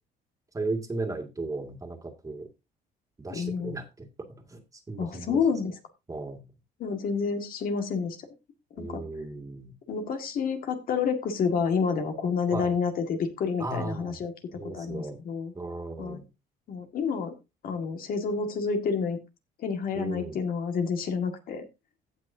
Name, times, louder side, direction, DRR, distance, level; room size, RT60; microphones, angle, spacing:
voice 1, 0.5-2.5 3.2-4.1 4.4-5.4 6.1-6.4 8.8-9.7 12.5-12.7 13.6-14.2 14.5-15.2 15.5-16.3 19.9-20.4, right 2 dB, 20° right, 4 dB, 2.2 m, -35 dB
voice 2, 3.3-3.7 5.0-5.7 6.8-8.2 8.7-9.0 9.9-14.3 14.6-15.5 16.0-16.2 16.7-17.3 17.6-19.2 19.6-21.6, left 5 dB, 60° left, 5 dB, 2.0 m, -29 dB
16.5 x 6.1 x 2.8 m, 0.25 s
cardioid pair, 110°, 17 cm